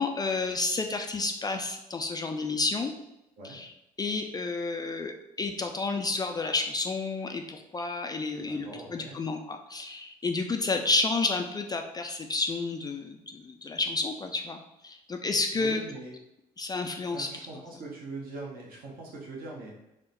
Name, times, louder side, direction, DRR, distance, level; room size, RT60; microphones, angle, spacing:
voice 1, 0.0-2.9 3.4-3.7 4.0-5.1 5.4-14.6 14.8-15.8 16.6-17.3, left 3 dB, 20° left, 4 dB, 0.4 m, -30 dB
voice 2, 8.4-9.2 15.5-16.1 17.1-19.7, right 3 dB, 50° right, -4 dB, 1.1 m, -41 dB
3.5 x 2.1 x 4.1 m, 0.86 s
hypercardioid pair, 60°, 19 cm